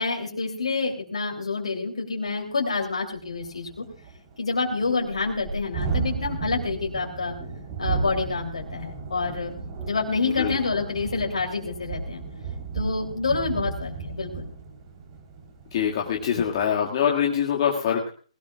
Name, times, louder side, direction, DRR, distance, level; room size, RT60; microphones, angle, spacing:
voice 1, 0.0-3.8 4.4-7.3 7.8-9.5 9.8-12.2 12.7-14.5, left 4 dB, 65° left, 0 dB, 3.1 m, -28 dB
Thunderstorm, 2.3-2.4 2.7-2.8 3.1-16.7, right 5 dB, 30° right, 3.8 m, -34 dB
voice 2, 15.7-18.1, left 8 dB, 40° left, -1 dB, 2.0 m, -24 dB
20.0 x 18.5 x 2.4 m, 0.40 s
figure-of-eight pair, 135°, 3 cm